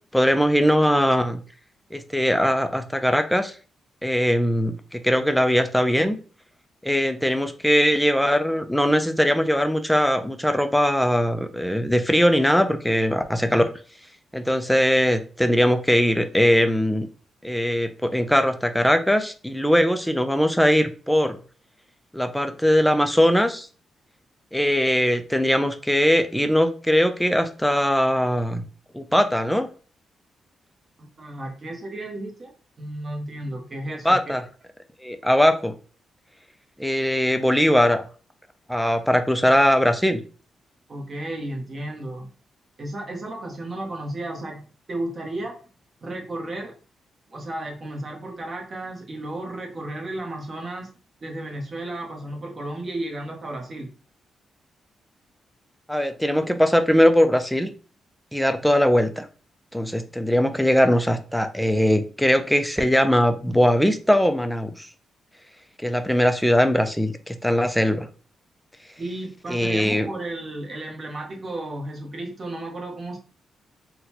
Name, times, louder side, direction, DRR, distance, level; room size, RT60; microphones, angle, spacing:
voice 1, 0.1-1.4 1.9-3.5 4.0-6.2 6.8-13.7 14.3-17.1 17.4-21.4 22.1-23.7 24.5-28.6 28.9-29.7 34.0-34.4 35.0-35.7 36.8-38.0 38.7-40.2 55.9-57.7 58.3-59.3 59.7-64.9 65.8-68.1 69.5-70.1, equal, ahead, 8 dB, 0.4 m, -20 dB
voice 2, 31.0-34.2 40.9-42.3 42.8-45.6 46.0-46.7 47.3-50.9 51.2-53.9 69.0-73.2, right 1 dB, 40° right, 0 dB, 0.9 m, -33 dB
3.7 x 2.2 x 2.8 m, 0.39 s
cardioid pair, 95°, 0 cm